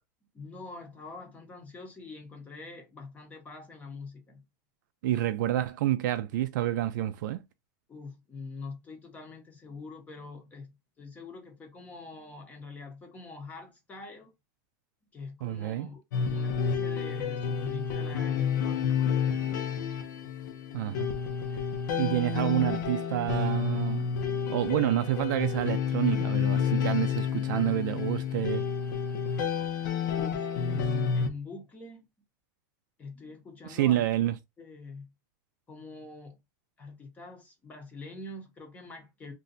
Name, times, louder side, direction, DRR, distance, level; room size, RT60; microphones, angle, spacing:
voice 1, 0.3-4.4 7.9-14.3 15.1-19.7 30.1-32.1 33.0-34.0 34.6-35.1 35.7-36.4 36.8-39.3, left 3 dB, 15° left, 0.7 m, -44 dB
voice 2, 5.0-7.4 15.4-15.9 20.7-21.1 22.0-24.1 24.5-28.7 33.6-34.4, right 13 dB, 75° right, 0.4 m, -28 dB
sound 1, 16.1-31.3, left 7 dB, 80° left, 0.7 m, -30 dB
2.6 x 2.2 x 3.9 m
supercardioid pair, 165°, 10 cm